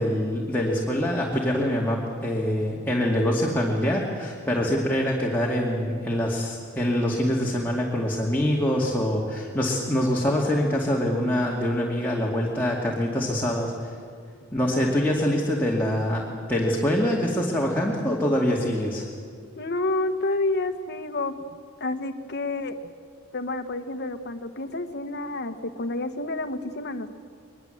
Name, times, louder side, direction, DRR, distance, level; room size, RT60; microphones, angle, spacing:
voice 1, 0.0-13.9 14.5-19.1, equal, 10° left, -3 dB, 2.4 m, -25 dB
voice 2, 19.6-21.3 21.8-22.7 23.3-27.1, left 2 dB, 55° left, 9 dB, 1.4 m, -29 dB
22.5 x 21.5 x 7.9 m, 2.2 s
head